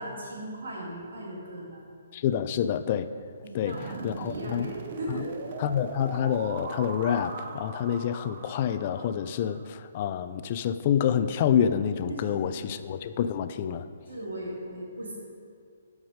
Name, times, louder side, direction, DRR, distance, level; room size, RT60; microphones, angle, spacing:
voice 1, 0.0-1.8 3.4-5.4 12.1-12.7 14.1-15.2, right 1 dB, 85° right, -4 dB, 2.5 m, -38 dB
voice 2, 2.1-3.1 3.5-3.8 4.0-4.7 5.1-5.2 5.6-13.8, left 9 dB, 35° left, 12 dB, 0.4 m, -27 dB
sound 1, 3.7-9.6, right 4 dB, 50° right, 0.8 m, -39 dB
11.5 x 4.8 x 4.9 m, 2.2 s
hypercardioid pair, 160°, 0 cm